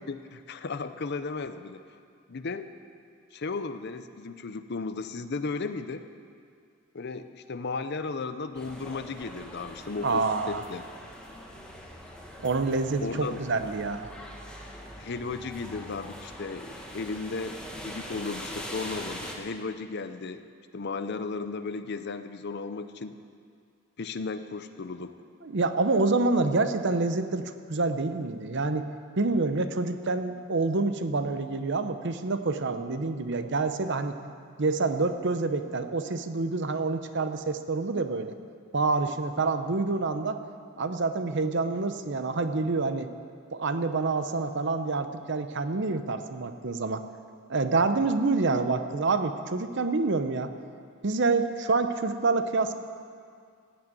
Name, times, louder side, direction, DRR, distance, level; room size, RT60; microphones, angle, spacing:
voice 1, 0.1-1.8 2.3-2.7 3.3-6.0 6.9-10.8 13.0-13.4 15.0-20.4 20.7-23.2 24.0-25.2, left 4 dB, 50° left, 11 dB, 0.6 m, -35 dB
sound 1, 8.5-19.3, equal, 5° left, 1.3 m, -42 dB
voice 2, 10.0-10.6 12.4-14.1 25.4-28.8 29.2-34.1 34.6-38.3 38.7-40.4 40.8-43.1 43.5-47.0 47.5-50.5 51.0-52.7, right 3 dB, 55° right, 9 dB, 0.7 m, -27 dB
16.0 x 6.3 x 9.0 m, 2.2 s
head